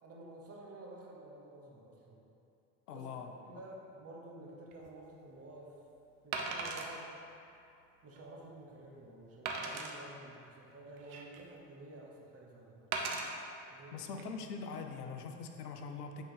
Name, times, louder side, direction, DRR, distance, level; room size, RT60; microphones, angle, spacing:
voice 1, 0.0-2.2 2.9-5.8 6.2-7.1 8.0-12.9 13.6-14.1, right 2 dB, 30° right, -2 dB, 1.2 m, -51 dB
voice 2, 2.9-3.3 13.9-16.2, left 5 dB, 75° left, 5 dB, 0.6 m, -42 dB
Wood, 4.7-4.9 6.3-6.9 7.5-7.6 8.1-8.2 9.4-9.9 10.7-11.5 12.9-13.3 14.0-14.2, right 4 dB, 60° right, 0.9 m, -38 dB
9.1 x 3.7 x 3.5 m, 2.6 s
figure-of-eight pair, 65°, 47 cm